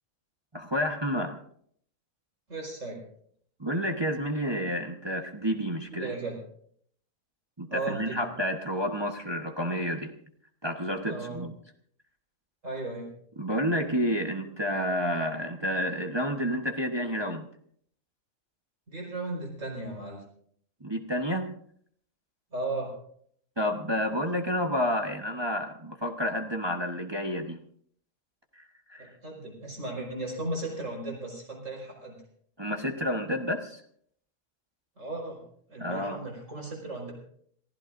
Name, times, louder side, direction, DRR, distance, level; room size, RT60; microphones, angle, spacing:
voice 1, 0.5-1.4 3.6-6.1 7.6-10.1 10.6-11.5 13.4-17.5 20.8-21.5 23.6-27.6 28.6-28.7 28.9-29.1 32.6-33.8 35.8-36.2, equal, 20° right, 2 dB, 1.1 m, -30 dB
voice 2, 2.5-3.0 5.9-6.4 7.7-8.3 11.1-11.4 12.6-13.1 18.9-20.2 22.5-22.9 29.0-32.2 35.0-35.4 35.7-37.1, right 2 dB, 65° right, 0 dB, 5.6 m, -36 dB
27.5 x 15.5 x 2.6 m, 0.63 s
omnidirectional pair, 1.4 m